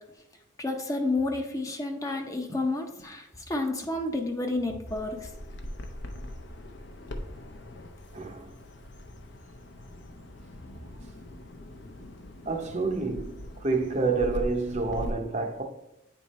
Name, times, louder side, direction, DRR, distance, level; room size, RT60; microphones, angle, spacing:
voice 1, 0.6-5.3, left 2 dB, 15° left, 0.6 m, -30 dB
Bird vocalization bird call bird song, 4.9-15.1, left 1 dB, 60° left, 0.7 m, -41 dB
voice 2, 8.1-8.5 12.5-15.6, right 3 dB, 35° right, 0.6 m, -28 dB
9.3 x 3.4 x 4.1 m
head